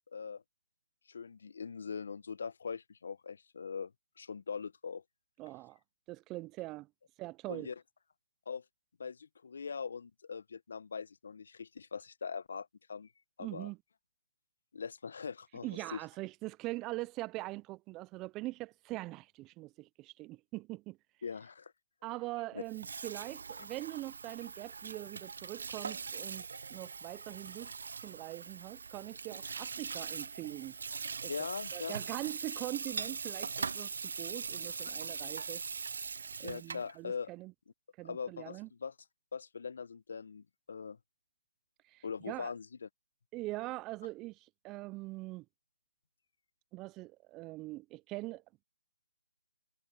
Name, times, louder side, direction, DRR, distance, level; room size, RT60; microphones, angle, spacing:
voice 1, 0.1-0.4 1.1-3.9 4.2-5.0 7.5-7.7 8.5-8.6 9.0-13.1 13.4-13.7 14.7-15.7 15.9-16.0 21.2-21.7 22.5-22.6 31.3-32.0 36.4-37.3 38.0-38.9 39.3-41.0 42.0-42.9, left 6 dB, 60° left, 0.9 m, -41 dB
voice 2, 5.4-5.8 6.1-6.9 7.2-7.7 13.4-13.8 15.6-21.0 22.0-27.7 28.0-30.7 31.2-31.3 31.7-35.6 36.4-37.5 38.0-38.7 41.9-42.5 43.3-45.5 46.7-48.6, right 20 dB, 15° right, 0.4 m, -42 dB
Water tap faucet / Sink (filling or washing), 22.6-36.9, right 5 dB, 60° right, 0.6 m, -41 dB
hypercardioid pair, 155°, 0 cm